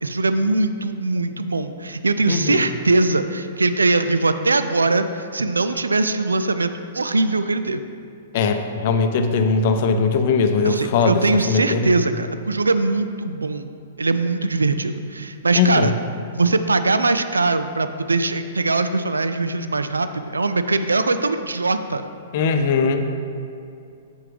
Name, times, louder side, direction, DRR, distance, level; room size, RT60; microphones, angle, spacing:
voice 1, 0.0-7.8 10.6-13.7 14.0-15.9 16.3-22.1, right 3 dB, 80° right, 10 dB, 0.4 m, -21 dB
voice 2, 2.3-2.7 8.3-11.2 11.5-11.9 15.6-15.9 22.3-23.0, left 5 dB, 45° left, 6 dB, 0.6 m, -20 dB
7.5 x 7.3 x 3.4 m, 2.6 s
figure-of-eight pair, 110°, 0 cm